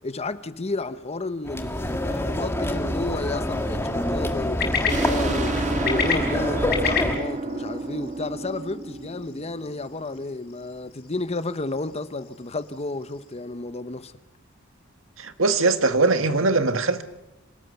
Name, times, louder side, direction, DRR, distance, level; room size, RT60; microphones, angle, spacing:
voice 1, 0.0-14.1, left 2 dB, 30° left, 0.9 m, -32 dB
sound 1, 1.4-7.2, left 1 dB, 15° left, 1.9 m, -26 dB
sound 2, 1.8-13.4, left 6 dB, 50° left, 5.9 m, -34 dB
sound 3, 4.9-10.2, right 3 dB, 40° right, 2.2 m, -31 dB
voice 2, 15.2-17.0, right 3 dB, 80° right, 1.7 m, -21 dB
26.5 x 18.5 x 7.0 m
head